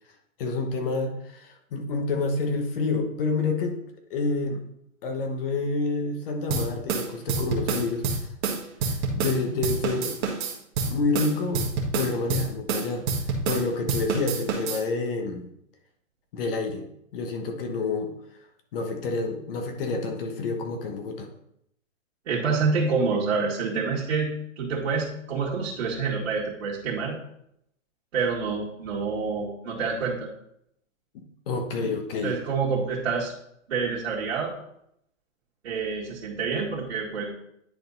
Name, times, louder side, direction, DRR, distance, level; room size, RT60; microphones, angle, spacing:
voice 1, 0.4-3.8 4.1-4.6 5.0-8.3 8.9-10.2 10.9-13.1 13.4-15.5 16.3-16.8 17.1-18.1 18.7-21.3 31.5-32.4, left 3 dB, 45° left, 4 dB, 1.3 m, -28 dB
sound 1, 6.5-9.4 9.6-13.6 13.9-14.8, right 4 dB, 35° right, 1.5 m, -27 dB
voice 2, 22.3-27.2 28.1-30.3 32.2-33.3 33.7-34.5 35.6-37.2, right 5 dB, 55° right, -6 dB, 2.0 m, -27 dB
9.8 x 4.3 x 4.0 m, 0.74 s
hypercardioid pair, 150°, 40 cm